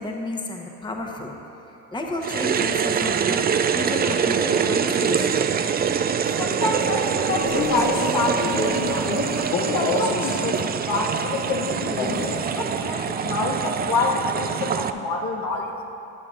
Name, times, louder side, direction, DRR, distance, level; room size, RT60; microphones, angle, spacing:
voice 1, 0.0-1.4 1.9-5.5, left 1 dB, 10° left, 1 dB, 1.0 m, -31 dB
sound 1, 2.2-14.9, right 7 dB, 25° right, 0.4 m, -24 dB
voice 2, 6.4-15.7, left 3 dB, 65° left, -1 dB, 1.7 m, -27 dB
Male speech man speaking, 7.3-10.5 11.8-12.5, left 3 dB, 90° left, 1.3 m, -28 dB
15.5 x 10.0 x 2.5 m, 2.8 s
supercardioid pair, 75°, 36 cm